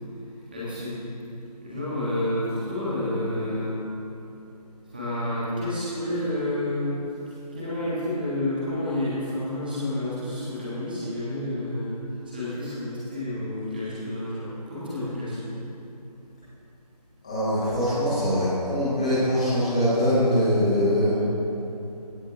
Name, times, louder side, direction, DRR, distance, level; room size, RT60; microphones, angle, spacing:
voice 1, 0.5-1.0 1.6-3.8 4.9-7.0 7.3-11.9 12.2-15.5, left 1 dB, 15° right, -10 dB, 1.6 m, -29 dB
voice 2, 17.2-21.2, equal, 10° left, -14 dB, 1.4 m, -23 dB
16.5 x 6.9 x 3.6 m, 3.0 s
figure-of-eight pair, 165°, 21 cm